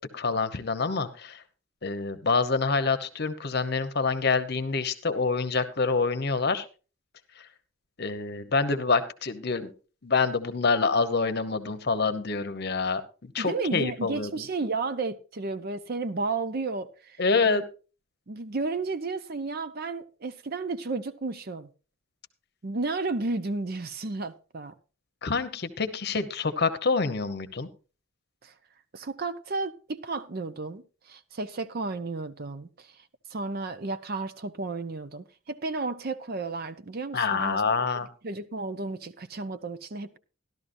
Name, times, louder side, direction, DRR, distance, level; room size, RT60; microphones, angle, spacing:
voice 1, 0.1-1.4 1.8-6.6 8.0-9.7 10.0-14.3 17.2-17.6 25.2-27.7 37.1-38.1, left 4 dB, 50° left, 0.9 m, -26 dB
voice 2, 13.4-17.2 17.4-17.6 18.3-21.7 22.6-24.7 28.4-28.5 28.9-30.8 31.1-32.9 33.3-37.9 38.2-40.2, right 3 dB, 45° right, 0.6 m, -33 dB
14.0 x 12.0 x 2.6 m
head